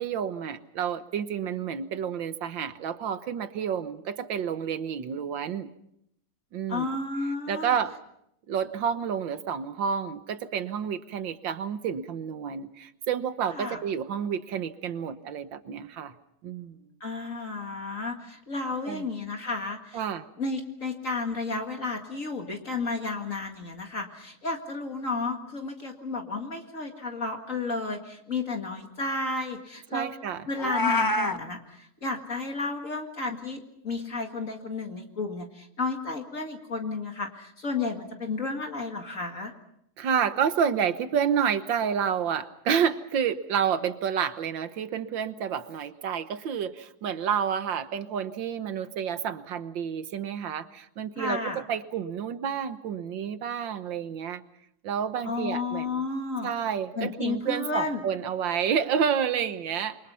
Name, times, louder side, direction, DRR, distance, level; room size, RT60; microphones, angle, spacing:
voice 1, 0.0-5.7 6.5-7.0 7.5-8.0 8.5-16.1 16.4-16.8 18.9-19.0 19.9-20.3 29.9-30.4 40.0-54.4 54.8-56.0 56.4-60.1, right 7 dB, 90° right, 11 dB, 1.9 m, -29 dB
voice 2, 6.7-7.7 13.5-13.8 17.0-20.0 20.4-30.1 30.5-39.5 51.2-51.6 55.2-56.5 56.9-58.0, left 3 dB, 45° left, 3 dB, 2.4 m, -32 dB
Meow, 30.5-31.4, left 1 dB, 20° left, 0.7 m, -25 dB
27.5 x 24.0 x 5.7 m, 0.76 s
omnidirectional pair, 2.0 m